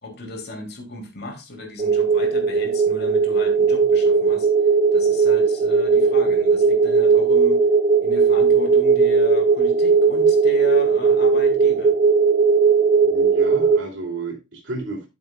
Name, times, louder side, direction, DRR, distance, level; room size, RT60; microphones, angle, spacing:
voice 1, 0.0-4.5 4.9-7.6 8.0-12.0, left 2 dB, 60° left, 2 dB, 3.1 m, -36 dB
sound 1, 1.8-13.8, right 5 dB, 40° right, 0.5 m, -17 dB
voice 2, 13.0-15.1, right 3 dB, 80° right, 0 dB, 3.0 m, -32 dB
13.0 x 7.1 x 2.4 m, 0.25 s
head